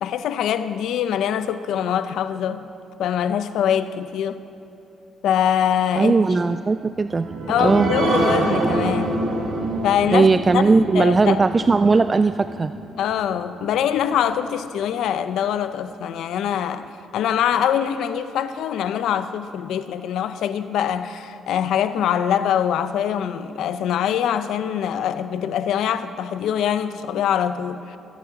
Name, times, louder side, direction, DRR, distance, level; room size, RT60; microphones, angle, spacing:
voice 1, 0.0-2.7 3.0-4.4 5.2-6.1 6.5-6.6 7.5-9.3 9.8-10.3 10.5-11.4 13.0-28.0, left 9 dB, 80° left, 0.6 m, -23 dB
voice 2, 6.0-7.3 7.6-7.9 10.1-12.7, right 4 dB, 30° right, 0.3 m, -18 dB
sound 1, 7.0-14.1 14.5-14.6 15.0-15.1, right 2 dB, 80° right, 3.1 m, -26 dB
23.5 x 8.5 x 5.9 m
cardioid pair, 90°, 0 cm